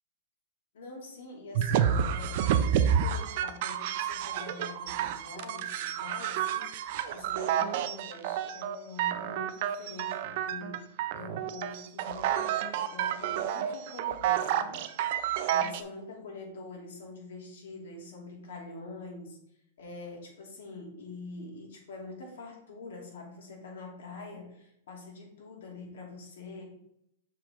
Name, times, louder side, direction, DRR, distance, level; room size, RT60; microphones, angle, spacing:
voice 1, 0.7-10.8 11.1-15.2 15.5-19.4 19.8-26.6, left 3 dB, 80° left, -1 dB, 2.5 m, -45 dB
sound 1, 1.6-15.8, right 9 dB, 50° right, 0.4 m, -29 dB
6.8 x 4.8 x 3.6 m, 0.76 s
supercardioid pair, 165°, 0 cm